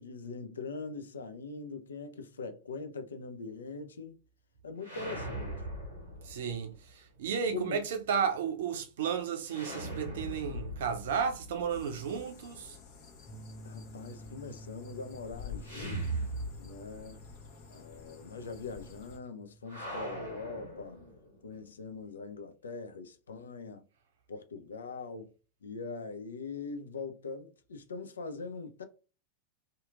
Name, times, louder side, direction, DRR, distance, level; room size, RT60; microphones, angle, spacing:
voice 1, 0.0-4.2 4.6-5.6 7.5-7.8 13.6-16.1 16.6-17.2 17.7-21.0 21.4-23.8 24.3-25.3 25.6-28.8, left 4 dB, 70° left, 0.4 m, -42 dB
sound 1, 4.8-6.8 9.5-12.5 15.6-17.0 17.3-17.4 19.7-21.4, right 1 dB, 85° left, 1.4 m, -40 dB
voice 2, 6.2-12.7, right 7 dB, 60° right, 0.5 m, -33 dB
sound 2, 11.7-19.2, left 8 dB, 50° left, 0.9 m, -50 dB
sound 3, 13.3-19.9, right 2 dB, 5° left, 0.8 m, -52 dB
2.8 x 2.4 x 2.4 m
figure-of-eight pair, 90°, 0 cm